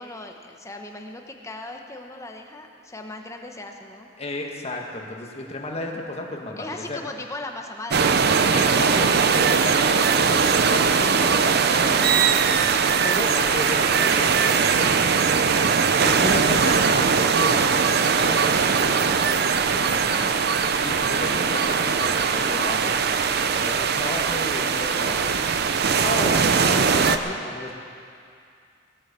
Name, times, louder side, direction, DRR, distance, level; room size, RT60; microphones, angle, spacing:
voice 1, 0.0-4.1 6.6-8.3 18.9-19.9, left 2 dB, 15° left, 3 dB, 1.0 m, -38 dB
voice 2, 4.2-7.0 8.5-19.3 19.6-25.3 26.0-27.7, left 1 dB, 30° left, 1 dB, 1.6 m, -33 dB
sound 1, 7.9-27.2, right 6 dB, 55° right, 0.6 m, -20 dB
18.0 x 9.6 x 6.9 m, 2.4 s
head